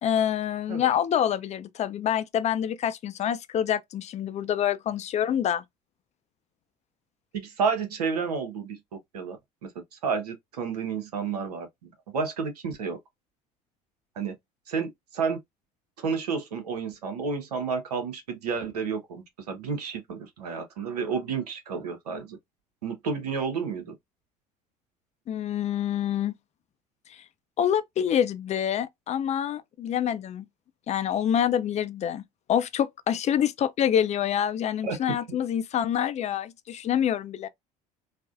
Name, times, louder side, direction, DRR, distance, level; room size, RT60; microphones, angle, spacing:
voice 1, 0.0-5.6 25.3-26.3 27.1-27.2 27.6-30.5 30.9-32.2 32.5-37.5, left 9 dB, 35° left, 0.4 m, -26 dB
voice 2, 7.3-9.7 10.0-11.7 12.1-13.0 14.2-14.3 14.7-15.4 16.0-22.4 22.8-23.9 34.8-35.2, right 5 dB, 90° right, 0.7 m, -31 dB
3.2 x 2.1 x 2.4 m
hypercardioid pair, 65°, 19 cm